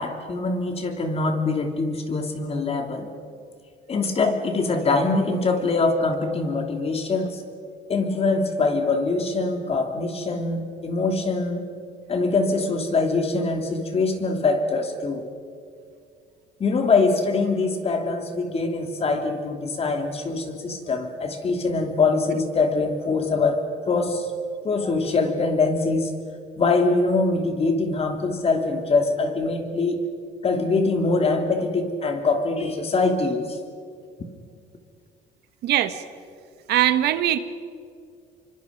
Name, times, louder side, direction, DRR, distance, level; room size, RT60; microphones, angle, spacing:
voice 1, 0.0-3.1 3.9-7.4 7.9-11.7 12.1-15.3 16.6-24.3 24.6-26.1 26.6-30.0 30.4-33.6, left 3 dB, 35° left, 5 dB, 3.1 m, -23 dB
voice 2, 35.6-36.0 36.7-37.4, right 12 dB, 80° right, 11 dB, 1.4 m, -21 dB
28.0 x 24.5 x 5.3 m, 2.3 s
cardioid pair, 110°, 17 cm